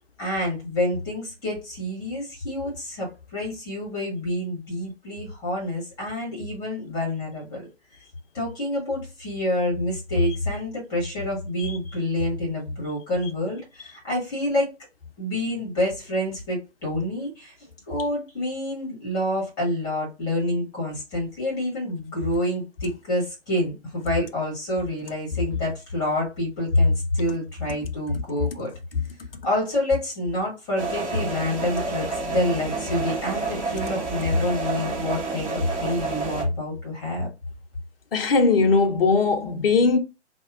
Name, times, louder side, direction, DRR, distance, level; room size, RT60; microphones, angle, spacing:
voice 1, 0.2-7.6 8.3-14.7 15.2-28.7 29.4-37.3, left 1 dB, 10° left, 1.0 m, -27 dB
sound 1, 30.8-36.4, right 3 dB, 30° right, 1.6 m, -29 dB
voice 2, 38.1-40.0, left 4 dB, 55° left, 0.6 m, -19 dB
2.8 x 2.2 x 2.4 m
figure-of-eight pair, 135°, 35 cm